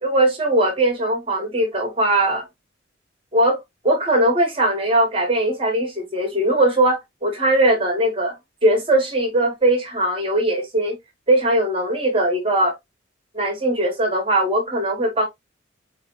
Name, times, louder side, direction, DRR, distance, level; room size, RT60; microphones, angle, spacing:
voice 1, 0.0-2.5 3.3-8.4 8.6-11.0 11.3-12.8 13.3-15.3, right 1 dB, 25° right, 1.3 m, -20 dB
4.5 x 3.2 x 3.0 m
head